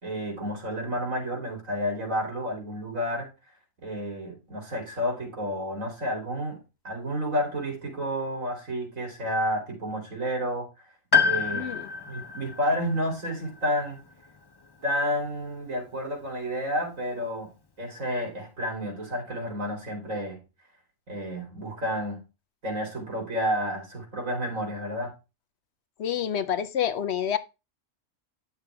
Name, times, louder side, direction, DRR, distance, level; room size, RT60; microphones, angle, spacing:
voice 1, 0.0-3.3 3.8-6.6 6.8-10.7 11.2-11.7 12.1-14.0 14.8-17.5 17.8-20.4 21.1-22.2 22.6-25.1, equal, 85° right, 3.9 m, -30 dB
Piano, 11.1-15.3 16.5-16.6, left 5 dB, 25° left, 0.6 m, -28 dB
voice 2, 11.5-11.9 26.0-27.4, left 9 dB, 65° left, 0.8 m, -28 dB
10.0 x 6.7 x 3.5 m
omnidirectional pair, 1.3 m